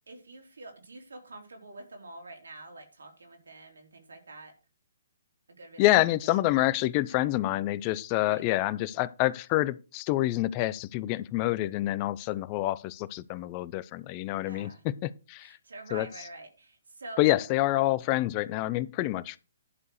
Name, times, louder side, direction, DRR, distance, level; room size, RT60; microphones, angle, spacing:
voice 1, 0.1-4.5 5.5-5.9 8.3-8.4 14.4-14.8 15.4-17.3, right 2 dB, 85° right, 3.8 m, -46 dB
voice 2, 5.8-15.6 15.9-16.1 17.2-19.4, left 16 dB, 30° left, 0.6 m, -27 dB
11.0 x 4.7 x 6.4 m
hypercardioid pair, 140°, 0 cm